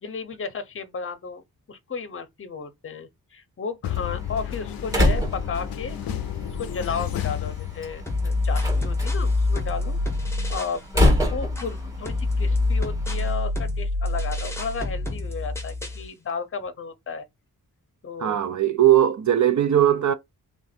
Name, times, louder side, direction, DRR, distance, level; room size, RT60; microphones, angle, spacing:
voice 1, 0.0-6.0 6.6-10.0 10.5-11.0 11.3-17.3 18.0-18.4, left 5 dB, 35° left, 0.7 m, -33 dB
sound 1, 3.8-8.3, left 11 dB, 75° left, 0.5 m, -31 dB
Slam, 3.9-13.3, left 1 dB, 10° right, 1.5 m, -28 dB
sound 2, 8.1-10.8 11.1-16.1, left 2 dB, 5° left, 0.8 m, -26 dB
voice 2, 18.2-20.1, right 11 dB, 55° right, 0.5 m, -19 dB
3.5 x 2.6 x 4.1 m
wide cardioid pair, 160°, 36 cm